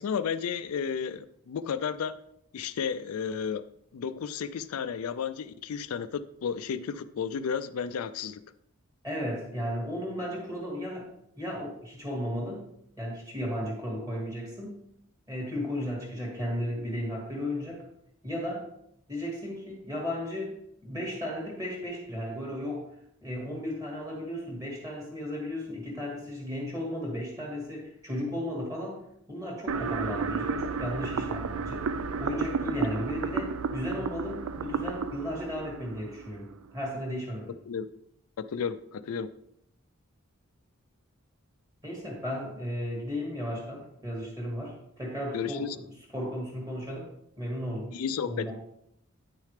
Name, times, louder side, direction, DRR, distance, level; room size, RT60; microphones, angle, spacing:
voice 1, 0.0-2.2 2.5-3.6 3.9-8.4 37.7-37.9 38.4-39.3 45.3-45.8 47.9-48.5, left 6 dB, 85° left, 12 dB, 0.4 m, -32 dB
voice 2, 9.0-11.1 11.4-12.6 13.0-14.8 15.3-17.8 18.2-18.7 19.1-20.5 20.8-22.9 23.2-29.0 29.3-31.9 32.2-37.5 41.8-47.1 47.4-48.0 48.3-48.5, left 1 dB, 15° right, -2 dB, 2.5 m, -35 dB
sound 1, 29.7-36.7, right 5 dB, 75° right, 0.5 m, -32 dB
9.3 x 6.4 x 3.3 m, 0.75 s
head